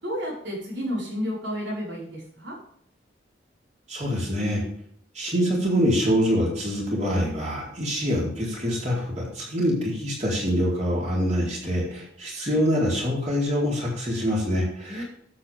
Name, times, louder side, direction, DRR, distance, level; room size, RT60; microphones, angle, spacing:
voice 1, 0.0-2.6 14.8-15.0, equal, 70° right, -3 dB, 5.3 m, -31 dB
voice 2, 3.9-4.6 5.1-15.0, equal, 35° right, -3 dB, 4.2 m, -25 dB
12.0 x 8.2 x 3.6 m, 0.64 s
head